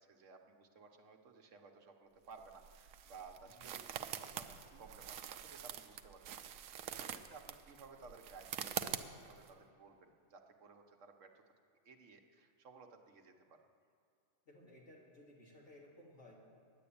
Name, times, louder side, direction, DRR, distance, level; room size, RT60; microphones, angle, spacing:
voice 1, 0.0-11.4 11.8-13.6, right 4 dB, 70° right, 3 dB, 1.3 m, -58 dB
sound 1, 2.3-9.5, right 9 dB, 90° right, 1.0 m, -45 dB
voice 2, 14.5-16.4, left 1 dB, 60° left, -3 dB, 2.7 m, -59 dB
10.5 x 9.5 x 8.6 m, 2.6 s
omnidirectional pair, 1.4 m